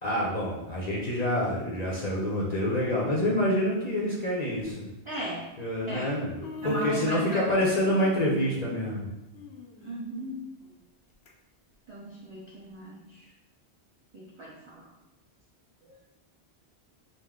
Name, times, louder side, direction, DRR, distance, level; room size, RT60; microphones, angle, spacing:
voice 1, 0.0-4.9 5.6-6.4 6.6-9.1, left 1 dB, 45° left, -5 dB, 0.7 m, -27 dB
Human voice, 2.8-2.9 3.8-3.9 4.5-4.7 5.7-5.8 6.1-7.5 7.8-11.3 11.7-11.8 12.7-12.8, left 4 dB, 75° left, 0.9 m, -46 dB
voice 2, 5.1-5.5 5.9-6.1 6.6-7.7 9.8-10.4 11.9-13.3 14.1-14.9 15.8-15.9, right 1 dB, 30° right, -7 dB, 0.7 m, -36 dB
5.4 x 2.1 x 3.6 m, 0.98 s
omnidirectional pair, 1.1 m